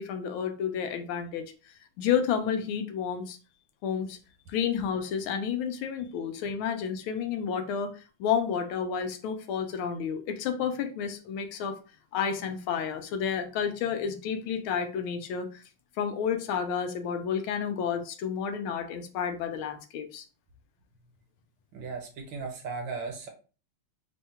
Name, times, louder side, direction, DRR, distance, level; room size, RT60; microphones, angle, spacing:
voice 1, 0.0-3.4 3.8-4.2 4.5-11.8 12.1-15.6 16.0-20.2, left 7 dB, 80° left, 7 dB, 1.4 m, -31 dB
voice 2, 21.7-23.3, right 4 dB, 70° right, 2 dB, 1.4 m, -36 dB
3.6 x 2.2 x 4.2 m, 0.35 s
omnidirectional pair, 2.4 m